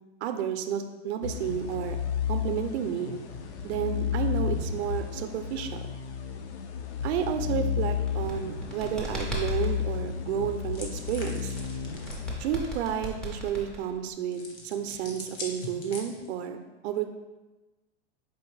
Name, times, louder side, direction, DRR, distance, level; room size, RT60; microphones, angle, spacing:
voice 1, 0.2-2.0 2.3-3.1 3.6-6.0 7.0-11.6 12.4-16.6 16.8-17.1, right 8 dB, 70° right, 7 dB, 0.5 m, -31 dB
sound 1, 1.2-13.1, left 8 dB, 75° left, 0.5 m, -32 dB
sound 2, 7.9-9.7 11.6-14.1, right 1 dB, ahead, 0.3 m, -36 dB
sound 3, 10.7-12.3 14.3-16.4, left 3 dB, 50° left, 1.0 m, -42 dB
4.4 x 2.9 x 3.1 m, 1.2 s
hypercardioid pair, 135°, 34 cm